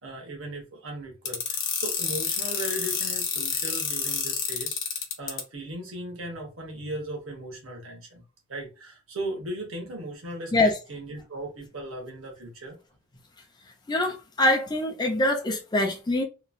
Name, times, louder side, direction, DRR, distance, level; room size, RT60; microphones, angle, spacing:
voice 1, 0.0-4.8 5.2-8.2 8.5-12.8, right 1 dB, 75° right, 1.1 m, -37 dB
sound 1, 1.3-5.4, left 7 dB, 60° left, 0.8 m, -28 dB
voice 2, 13.9-16.2, left 2 dB, 20° left, 0.5 m, -24 dB
3.0 x 2.4 x 2.5 m
head